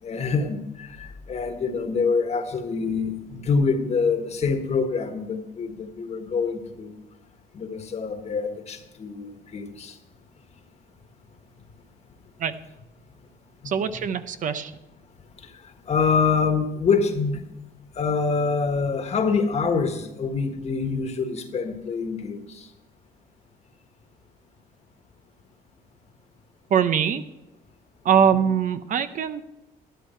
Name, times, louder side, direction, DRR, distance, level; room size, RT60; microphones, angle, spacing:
voice 1, 0.0-7.0 7.5-10.0 13.6-14.0 15.4-17.4 17.9-22.7 28.3-28.4, left 5 dB, 40° left, 7 dB, 1.5 m, -26 dB
voice 2, 13.6-14.7 26.7-27.2 28.0-29.4, right 7 dB, 50° right, 11 dB, 0.7 m, -22 dB
13.0 x 10.0 x 4.4 m, 0.95 s
cardioid pair, 110°, 17 cm